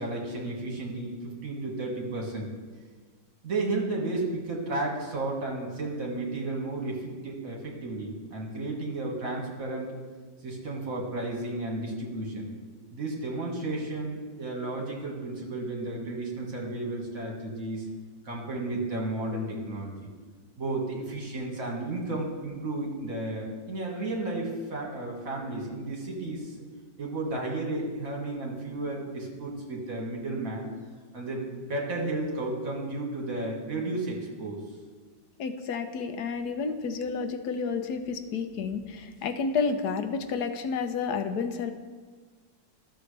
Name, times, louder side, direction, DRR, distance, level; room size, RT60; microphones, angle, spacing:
voice 1, 0.0-2.5 3.4-9.9 10.4-12.5 12.9-17.9 18.2-19.9 20.6-26.5 27.0-30.7 31.1-34.6, right 2 dB, 55° right, -1 dB, 2.1 m, -33 dB
voice 2, 35.4-41.7, left 5 dB, 75° left, 8 dB, 1.2 m, -30 dB
12.5 x 6.8 x 3.3 m, 1.4 s
omnidirectional pair, 1.8 m